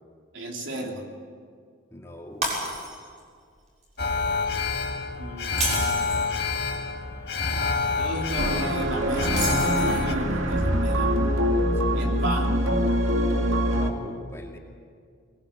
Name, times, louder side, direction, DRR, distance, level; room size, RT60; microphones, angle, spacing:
voice 1, 0.3-1.0 5.2-6.3 8.0-11.1 11.9-12.6, right 1 dB, 70° right, 1 dB, 3.3 m, -34 dB
voice 2, 1.9-2.5 11.8-12.2 13.6-14.6, left 1 dB, 15° left, 0 dB, 2.5 m, -42 dB
Shatter, 2.4-3.2 3.6-3.8 5.4-6.3 9.3-10.2, right 2 dB, 35° right, 6.6 m, -30 dB
Alarm, 4.0-10.1, left 4 dB, 55° left, 1.9 m, -27 dB
sound 1, 8.4-13.9, equal, 85° right, 2.4 m, -24 dB
21.5 x 21.0 x 8.9 m, 2.1 s
head